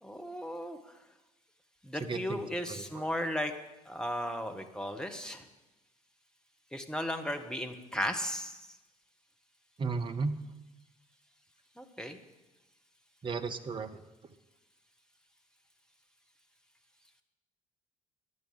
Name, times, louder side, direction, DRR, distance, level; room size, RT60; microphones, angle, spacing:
voice 1, 0.0-0.9 1.8-3.5 3.8-5.4 6.7-8.6 11.8-12.2, equal, 5° left, 6 dB, 1.6 m, -35 dB
voice 2, 2.0-2.4 2.7-3.0 9.8-10.3 13.2-14.0, right 4 dB, 25° right, 8 dB, 1.1 m, -34 dB
10.5 x 9.7 x 9.7 m, 1.0 s
figure-of-eight pair, 55°, 18 cm